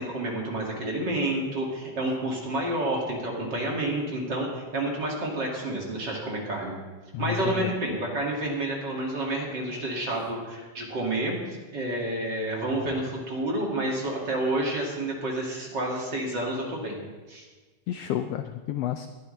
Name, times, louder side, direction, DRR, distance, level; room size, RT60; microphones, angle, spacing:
voice 1, 0.0-6.8 7.2-11.4 11.7-17.0 17.3-17.4, right 1 dB, 40° right, -2 dB, 2.9 m, -29 dB
voice 2, 7.1-7.7 17.9-19.1, left 11 dB, 80° left, 8 dB, 1.5 m, -30 dB
21.0 x 12.0 x 3.4 m, 1.3 s
omnidirectional pair, 3.3 m